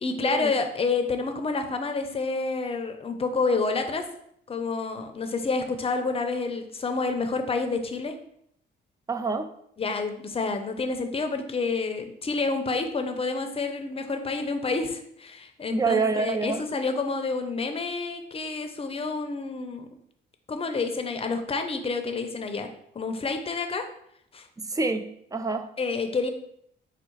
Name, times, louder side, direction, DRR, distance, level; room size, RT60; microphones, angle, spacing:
voice 1, 0.0-4.0 4.5-8.1 9.8-19.9 20.5-22.7 22.9-23.8 24.3-24.5 25.8-26.3, left 4 dB, 30° left, 6 dB, 0.6 m, -29 dB
voice 2, 9.1-9.5 15.7-16.6 24.7-25.1 25.3-25.7, right 4 dB, 15° right, 8 dB, 0.4 m, -26 dB
4.6 x 2.3 x 4.5 m, 0.71 s
cardioid pair, 90°, 20 cm